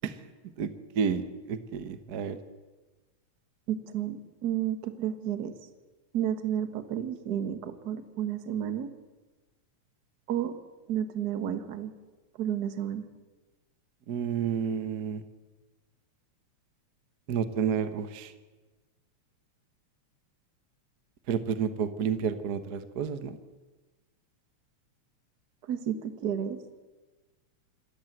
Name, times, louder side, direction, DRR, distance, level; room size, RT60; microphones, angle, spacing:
voice 1, 0.6-2.4 14.1-15.2 17.3-18.3 21.3-23.4, right 7 dB, 70° right, 11 dB, 0.9 m, -30 dB
voice 2, 3.7-5.5 6.1-8.9 10.3-10.5 10.9-11.9 12.4-13.0 25.7-26.6, right 10 dB, 45° right, 9 dB, 1.4 m, -31 dB
27.5 x 13.5 x 8.0 m, 1.2 s
omnidirectional pair, 3.3 m